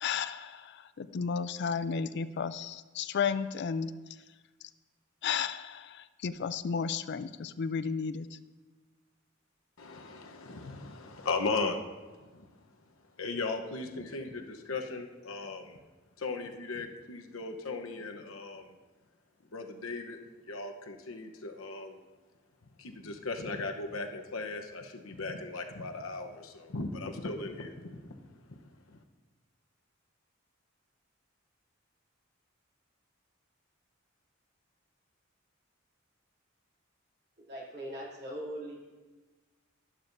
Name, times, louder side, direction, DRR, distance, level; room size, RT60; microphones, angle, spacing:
voice 1, 0.0-3.9 5.2-8.3, left 6 dB, 55° left, 13 dB, 0.4 m, -33 dB
voice 2, 9.8-11.8 12.1-12.5 13.2-14.4 14.7-15.8 16.2-18.7 19.5-20.2 20.4-22.0 22.8-29.0, left 3 dB, 90° left, 4 dB, 1.0 m, -37 dB
voice 3, 37.4-38.8, right 1 dB, 55° right, -4 dB, 2.8 m, -40 dB
11.5 x 11.5 x 2.7 m, 1.3 s
head